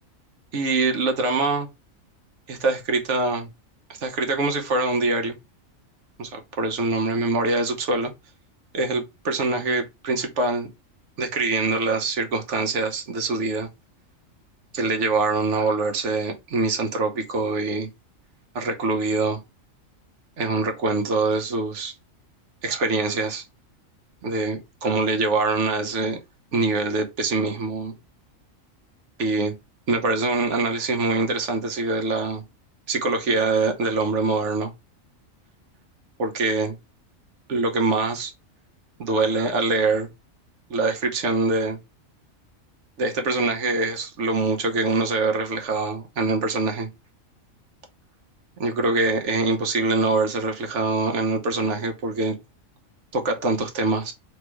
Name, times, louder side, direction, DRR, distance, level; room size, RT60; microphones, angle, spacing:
voice 1, 0.5-1.7 2.5-3.5 4.0-5.3 6.2-8.1 8.7-10.7 11.2-13.7 14.7-17.9 18.5-19.4 20.4-21.9 22.6-23.4 24.2-26.2 26.5-27.9 29.2-29.5 29.9-32.4 32.9-34.7 36.2-36.7 37.5-38.3 39.0-40.1 40.7-41.8 43.0-46.9 48.6-52.4 53.1-54.1, right 3 dB, 60° right, 1.2 m, -24 dB
3.2 x 3.2 x 4.6 m
omnidirectional pair, 1.4 m